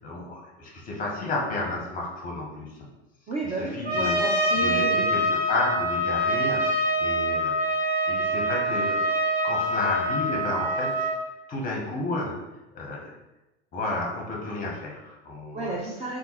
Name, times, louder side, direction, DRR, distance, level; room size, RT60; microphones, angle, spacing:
voice 1, 0.0-2.7 3.6-4.2 4.6-7.5 8.1-11.1 11.5-12.4 12.7-13.1 13.7-15.7, left 2 dB, 25° left, -2 dB, 0.8 m, -32 dB
voice 2, 3.3-5.2 15.5-16.2, right 2 dB, 20° right, -5 dB, 0.4 m, -32 dB
Trumpet, 3.9-11.2, equal, 60° right, 1.4 m, -25 dB
3.6 x 2.3 x 2.9 m, 0.98 s
figure-of-eight pair, 90°, 35 cm